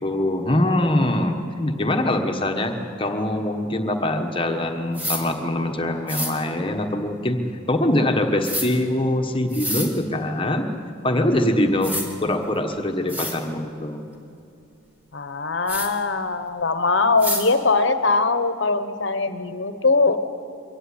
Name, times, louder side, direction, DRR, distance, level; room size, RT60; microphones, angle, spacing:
voice 1, 0.0-7.4 7.7-10.7 11.0-11.9 12.2-14.0, left 1 dB, 25° left, 4 dB, 1.3 m, -23 dB
sound 1, 4.9-5.2 6.1-6.3 8.4-8.7 9.5-9.9 11.4-11.5 11.8-12.1 12.7-12.8 13.1-13.4 15.7-15.9 17.2-17.5, left 1 dB, 10° right, 2.1 m, -27 dB
voice 2, 15.1-20.2, left 3 dB, 60° left, 10 dB, 1.2 m, -21 dB
23.5 x 17.0 x 9.9 m, 2.6 s
head